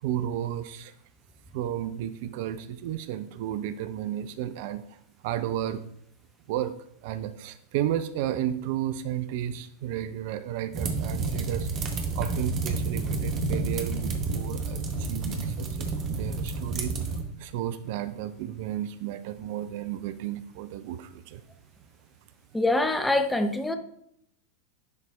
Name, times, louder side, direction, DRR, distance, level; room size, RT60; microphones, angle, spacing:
voice 1, 0.0-0.9 1.5-5.8 6.5-6.7 7.0-11.7 12.1-16.9 17.4-21.4, right 11 dB, 50° right, 12 dB, 0.3 m, -33 dB
sound 1, 10.7-17.2, right 3 dB, 30° right, 1.0 m, -30 dB
voice 2, 22.5-23.7, left 2 dB, 5° left, 7 dB, 0.6 m, -24 dB
10.5 x 4.0 x 2.4 m, 0.71 s
figure-of-eight pair, 90°, 0 cm